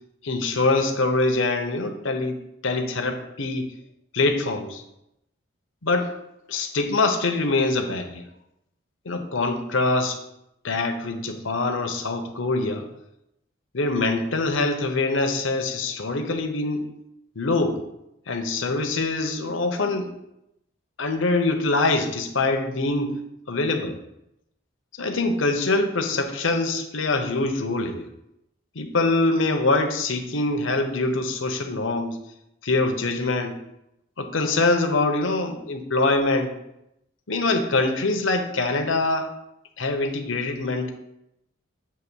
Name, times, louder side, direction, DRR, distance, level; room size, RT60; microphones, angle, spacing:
voice 1, 0.2-3.7 4.1-4.8 5.8-6.1 6.5-8.2 9.0-10.2 10.6-12.9 13.7-16.8 17.4-17.8 18.3-20.1 21.0-23.1 23.5-24.0 25.0-28.1 28.7-32.2 32.6-33.6 34.2-36.5 37.3-39.3 39.8-40.9, left 2 dB, 80° left, 5 dB, 0.9 m, -24 dB
8.4 x 3.1 x 6.2 m, 0.84 s
head